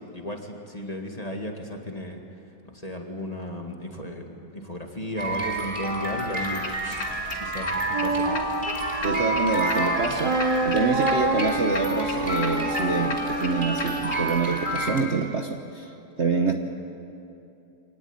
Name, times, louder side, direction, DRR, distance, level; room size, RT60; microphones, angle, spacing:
voice 1, 0.1-2.2 2.6-6.7 7.4-8.3, left 1 dB, 20° left, 2 dB, 2.0 m, -34 dB
sound 1, 5.2-15.0, right 1 dB, 25° right, 2.9 m, -30 dB
sound 2, 6.6-14.3, left 3 dB, 80° left, 2.8 m, -38 dB
Wind instrument woodwind instrument, 7.9-14.9, right 2 dB, 70° right, 2.8 m, -27 dB
voice 2, 9.0-10.4 10.6-15.9 16.2-16.5, right 4 dB, 45° right, 4 dB, 1.2 m, -26 dB
25.0 x 19.0 x 9.0 m, 2.8 s
omnidirectional pair, 2.0 m